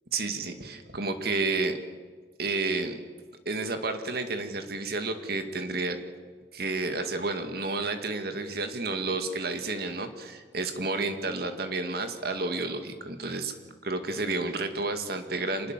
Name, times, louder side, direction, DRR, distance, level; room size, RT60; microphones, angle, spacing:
voice 1, 0.1-1.8 2.4-3.0 3.5-6.0 6.5-13.5 13.8-15.7, right 3 dB, 60° right, 7 dB, 2.1 m, -31 dB
25.5 x 21.0 x 7.5 m, 1.5 s
head